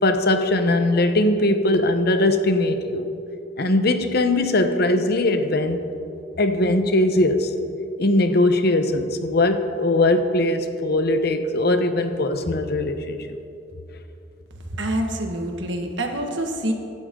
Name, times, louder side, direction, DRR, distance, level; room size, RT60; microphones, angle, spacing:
voice 1, 0.0-3.1 3.6-5.9 6.4-7.5 8.0-13.2, left 2 dB, 55° left, 8 dB, 1.0 m, -20 dB
voice 2, 14.7-16.7, right 1 dB, 70° right, 3 dB, 1.7 m, -26 dB
24.5 x 12.0 x 3.8 m, 2.8 s
head